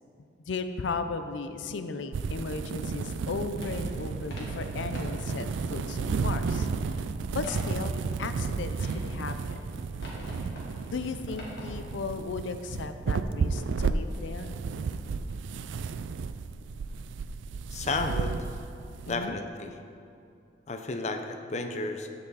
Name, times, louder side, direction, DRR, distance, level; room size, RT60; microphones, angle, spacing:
voice 1, 0.5-7.0 7.3-9.6 10.9-14.6 19.0-19.4, left 4 dB, 85° left, 9 dB, 0.5 m, -36 dB
sound 1, 2.1-19.1, right 4 dB, 85° right, 0.4 m, -33 dB
sound 2, 3.5-11.8, equal, 60° left, 2.2 m, -44 dB
voice 2, 17.7-18.5 19.0-19.7 20.7-22.1, left 3 dB, 40° left, 6 dB, 0.5 m, -32 dB
14.5 x 5.4 x 4.1 m, 2.6 s
head